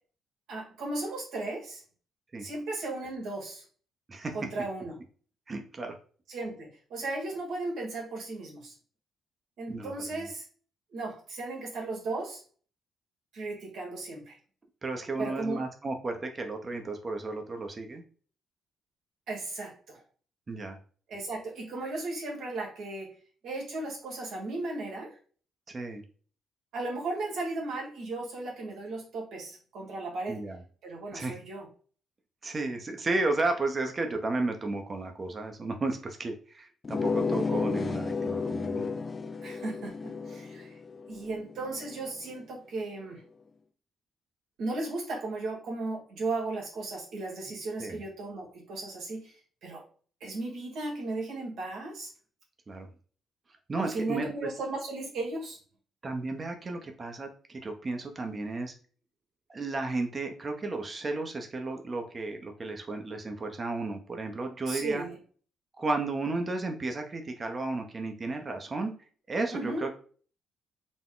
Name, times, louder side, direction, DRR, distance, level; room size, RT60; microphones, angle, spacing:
voice 1, 0.5-1.8 2.4-3.6 4.3-4.9 6.3-8.7 9.6-10.4 10.9-12.4 13.3-14.3 15.2-15.6 19.3-20.0 21.1-23.1 23.4-25.2 26.7-30.4 30.8-31.7 39.4-40.7 41.1-43.2 44.6-49.3 49.6-49.8 50.2-52.1 53.8-55.6 64.7-65.2 69.5-69.8, right 2 dB, 75° right, -2 dB, 1.7 m, -36 dB
voice 2, 5.5-5.9 9.7-10.3 14.8-18.0 20.5-20.8 25.7-26.0 30.3-30.6 31.1-31.3 32.4-38.9 47.8-48.0 52.7-52.9 53.7-54.5 56.0-58.7 59.5-65.1 65.7-68.9 69.3-69.9, right 2 dB, 30° right, 4 dB, 0.8 m, -33 dB
sound 1, 36.8-42.1, left 4 dB, 35° left, 0.3 m, -32 dB
4.0 x 2.2 x 3.9 m, 0.42 s
cardioid pair, 90°, 0 cm